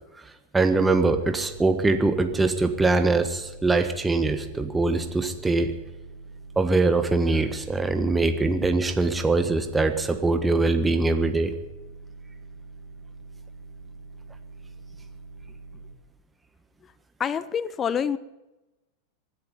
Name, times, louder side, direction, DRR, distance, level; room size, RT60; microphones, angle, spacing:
voice 1, 0.5-5.7 6.5-11.5, right 3 dB, 10° right, 8 dB, 1.4 m, -22 dB
sound 1, 0.9-16.0, right 4 dB, 70° right, 1.3 m, -44 dB
voice 2, 17.2-18.2, left 7 dB, 25° left, 17 dB, 0.7 m, -27 dB
24.5 x 10.5 x 5.5 m, 1.0 s
figure-of-eight pair, 90°, 0 cm